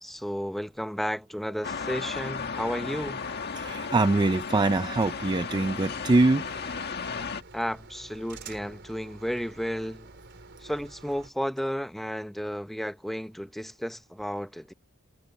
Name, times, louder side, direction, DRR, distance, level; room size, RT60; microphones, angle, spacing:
voice 1, 0.0-3.3 7.5-10.1 10.6-14.7, equal, ahead, 0.8 m, -33 dB
sound 1, 1.6-7.4, left 5 dB, 45° left, 1.7 m, -35 dB
voice 2, 3.6-6.5, right 2 dB, 20° right, 0.4 m, -23 dB
sound 2, 4.9-11.3, right 3 dB, 50° right, 4.3 m, -49 dB
head